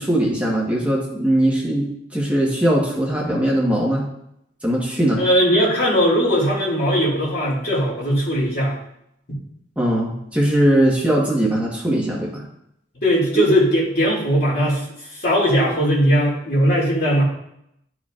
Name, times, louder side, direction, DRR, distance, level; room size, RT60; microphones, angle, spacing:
voice 1, 0.0-4.0 4.6-5.2 9.8-12.4 13.3-13.4, right 1 dB, 5° right, -4 dB, 1.2 m, -20 dB
voice 2, 5.2-8.8 13.0-14.9 15.1-17.2, equal, 55° left, -4 dB, 2.4 m, -19 dB
12.0 x 4.7 x 2.4 m, 0.77 s
head